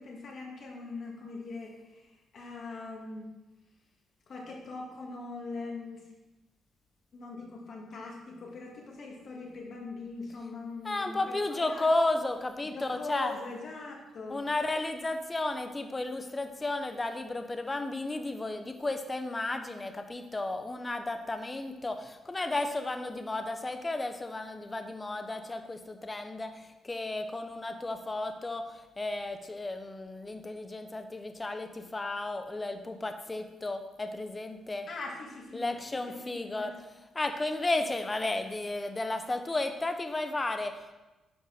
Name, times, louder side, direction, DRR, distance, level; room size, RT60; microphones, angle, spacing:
voice 1, 0.0-3.3 4.3-6.1 7.1-11.9 12.7-14.4 34.9-36.7, left 3 dB, 50° left, -1 dB, 2.2 m, -42 dB
voice 2, 10.8-13.3 14.3-34.9 35.5-36.7 37.1-40.9, left 2 dB, 20° left, 7 dB, 0.8 m, -33 dB
10.0 x 5.4 x 5.0 m, 1.1 s
cardioid pair, 115°, 0 cm